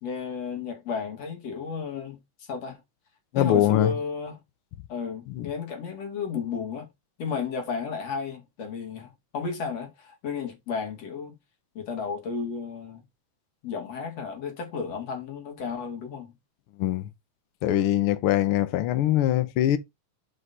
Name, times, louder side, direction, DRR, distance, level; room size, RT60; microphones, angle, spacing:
voice 1, 0.0-2.2 2.5-2.8 3.3-4.4 4.9-6.9 7.2-11.3 11.7-13.0 13.6-16.3, left 5 dB, 55° left, 3.2 m, -33 dB
voice 2, 3.3-3.9 5.3-5.5 16.8-17.1 17.6-19.8, left 12 dB, 85° left, 1.2 m, -23 dB
6.0 x 5.3 x 5.3 m
omnidirectional pair, 3.6 m